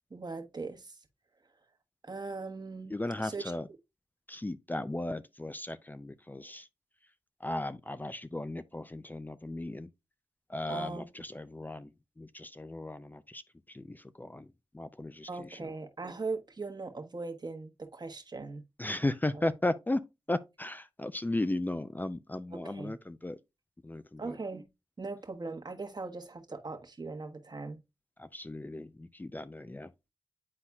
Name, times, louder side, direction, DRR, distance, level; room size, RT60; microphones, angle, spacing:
voice 1, 0.1-1.0 2.0-3.4 10.7-11.1 15.3-18.6 22.5-22.9 24.2-24.6 25.0-27.8, right 3 dB, 45° right, 1.2 m, -40 dB
voice 2, 2.9-3.7 4.3-6.7 7.4-9.9 10.5-13.4 13.7-14.5 14.7-15.7 18.8-20.0 20.3-23.4 23.8-24.4 28.2-29.9, left 2 dB, 20° left, 0.5 m, -36 dB
9.6 x 4.1 x 2.3 m
cardioid pair, 45°, 10 cm